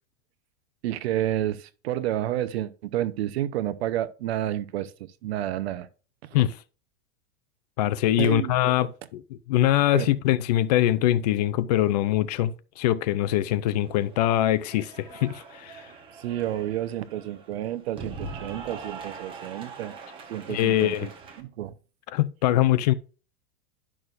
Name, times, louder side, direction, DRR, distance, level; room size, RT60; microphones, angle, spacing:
voice 1, 0.8-5.9 8.2-8.9 9.9-10.1 16.2-19.9 20.3-21.1 21.4-21.7, right 12 dB, 75° right, 0.9 m, -30 dB
voice 2, 7.8-9.2 9.5-15.9 20.5-21.1 22.1-22.9, left 13 dB, 40° left, 0.4 m, -23 dB
Cheering / Applause, 13.7-21.4, right 4 dB, 15° right, 0.9 m, -42 dB
11.0 x 6.2 x 2.6 m
supercardioid pair, 175°, 32 cm